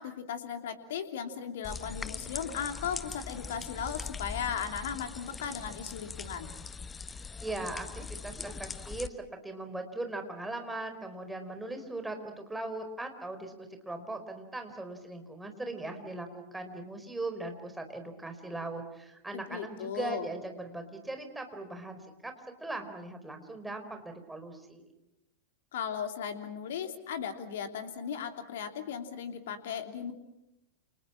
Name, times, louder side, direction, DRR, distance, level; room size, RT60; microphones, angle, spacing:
voice 1, 0.0-6.5 19.3-20.3 25.7-30.1, left 7 dB, 55° left, 7 dB, 3.0 m, -37 dB
sound 1, 1.6-9.1, left 5 dB, 15° left, 1.0 m, -41 dB
voice 2, 7.1-7.9 8.2-22.3 22.6-24.8, right 2 dB, 5° right, 6 dB, 4.6 m, -39 dB
29.5 x 29.5 x 6.0 m, 0.88 s
figure-of-eight pair, 90°, 0 cm